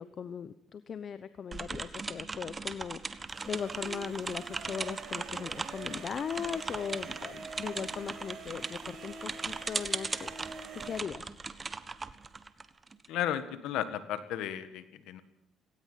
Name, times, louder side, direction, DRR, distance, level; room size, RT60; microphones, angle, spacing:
voice 1, 0.0-10.3 10.7-11.3, left 7 dB, 50° left, 13 dB, 0.9 m, -39 dB
sound 1, 1.5-13.1, right 4 dB, 25° right, 1.3 m, -39 dB
sound 2, 3.3-11.0, right 5 dB, 50° right, 5.3 m, -46 dB
voice 2, 13.1-15.2, left 11 dB, 80° left, 12 dB, 1.8 m, -34 dB
18.0 x 18.0 x 8.4 m, 0.81 s
cardioid pair, 85°, 0 cm